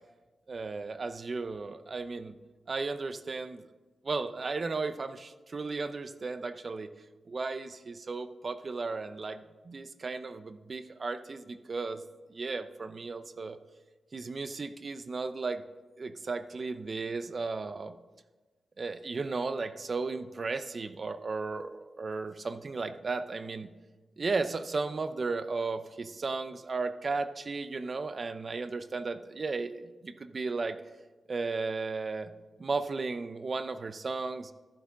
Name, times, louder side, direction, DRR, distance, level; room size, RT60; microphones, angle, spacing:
voice 1, 0.5-2.3 2.7-3.6 4.0-6.9 7.3-12.0 12.3-13.6 14.1-15.6 16.0-18.0 18.8-23.7 24.2-30.8 31.3-32.3 32.6-34.5, right 3 dB, 45° right, 12 dB, 0.5 m, -35 dB
14.5 x 7.4 x 3.6 m, 1.2 s
cardioid pair, 75°, 0 cm